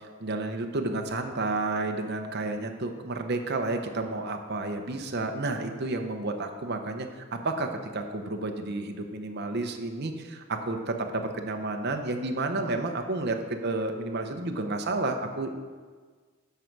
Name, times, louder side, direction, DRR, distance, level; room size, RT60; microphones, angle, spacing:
voice 1, 0.2-15.5, right 2 dB, 50° right, 5 dB, 0.8 m, -31 dB
12.5 x 4.6 x 5.3 m, 1.5 s
head